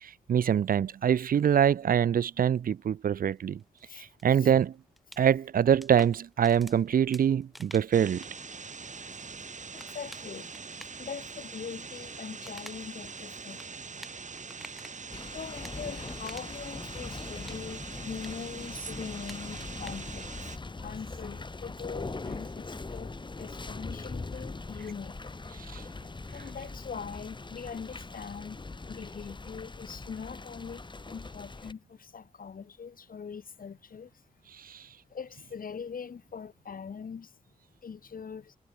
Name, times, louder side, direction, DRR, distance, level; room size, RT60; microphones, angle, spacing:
voice 1, 0.0-3.6 4.2-4.7 5.2-8.2 25.7-25.8 34.7-34.8, right 8 dB, 75° right, 0.5 m, -24 dB
sound 1, 3.3-15.0 15.4-16.7 17.0-19.9, equal, ahead, 6.7 m, -52 dB
sound 2, 7.9-20.6, right 5 dB, 55° right, 2.9 m, -43 dB
voice 2, 9.9-10.5 11.0-13.6 15.3-20.2 20.8-23.1 23.4-25.1 26.3-30.8 31.1-31.8 32.1-34.1 35.1-37.3 37.8-38.4, left 6 dB, 75° left, 2.4 m, -42 dB
sound 3, 15.1-31.7, left 3 dB, 30° left, 1.6 m, -41 dB
cardioid pair, 65°, 15 cm